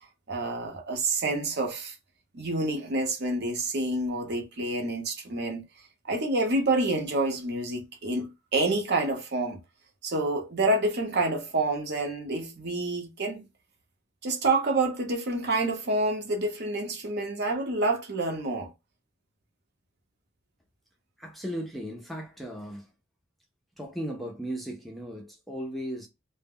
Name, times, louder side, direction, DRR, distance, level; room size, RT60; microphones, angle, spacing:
voice 1, 0.3-1.9 2.3-5.6 6.0-9.6 10.0-13.4 14.2-18.7, right 2 dB, 55° right, 0.7 m, -28 dB
voice 2, 21.2-22.9 23.8-26.1, equal, ahead, 0.4 m, -36 dB
2.0 x 2.0 x 3.5 m
head